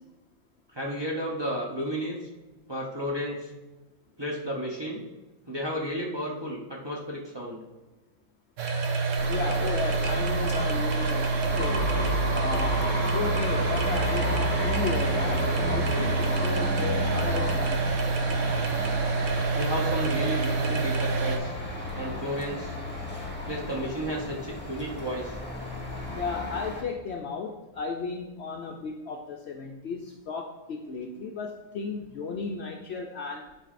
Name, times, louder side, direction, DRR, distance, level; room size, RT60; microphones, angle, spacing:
voice 1, 0.7-2.2 2.7-3.5 4.2-5.0 5.5-7.6 19.5-21.5 21.9-22.8 23.5-25.3, equal, 25° right, -3 dB, 0.7 m, -32 dB
sound 1, 8.6-21.4, right 4 dB, 65° right, 1.0 m, -27 dB
sound 2, 9.2-26.8, left 1 dB, 10° left, 0.9 m, -33 dB
voice 2, 9.3-11.3 11.6-11.9 12.3-17.8 26.1-33.5, left 4 dB, 65° left, 1 dB, 0.7 m, -34 dB
10.5 x 4.6 x 2.5 m, 1.1 s
omnidirectional pair, 1.5 m